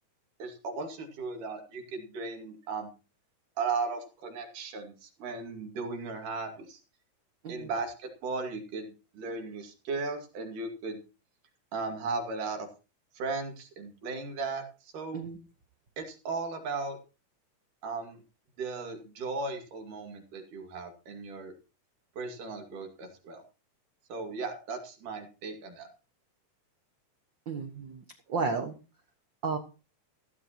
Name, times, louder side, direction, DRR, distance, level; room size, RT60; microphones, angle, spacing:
voice 1, 0.4-2.9 3.6-6.8 7.5-11.0 11.7-12.7 13.1-15.2 16.0-17.0 17.8-18.2 18.6-21.5 22.2-23.4 24.1-25.9, right 4 dB, 80° right, 4 dB, 3.9 m, -36 dB
voice 2, 27.5-28.0 28.3-28.8 29.4-29.6, right 4 dB, 50° right, 5 dB, 1.5 m, -32 dB
15.5 x 13.5 x 2.9 m, 0.32 s
omnidirectional pair, 3.7 m